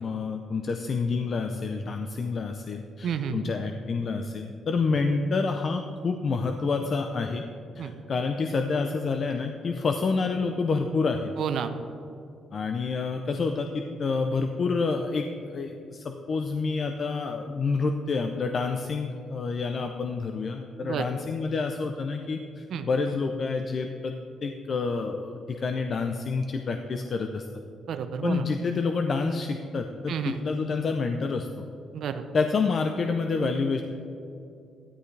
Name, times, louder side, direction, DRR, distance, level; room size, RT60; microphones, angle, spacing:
voice 1, 0.0-7.4 7.8-11.3 12.5-24.2 24.4-27.5 28.2-31.5 32.3-33.8, left 4 dB, 50° left, 5 dB, 0.6 m, -28 dB
voice 2, 3.0-3.5 7.8-7.9 11.4-11.7 20.8-21.1 22.7-22.9 27.9-28.5 30.1-30.4 31.9-32.2, right 8 dB, 70° right, 8 dB, 0.7 m, -30 dB
13.0 x 11.0 x 3.3 m, 2.6 s
cardioid pair, 90°, 0 cm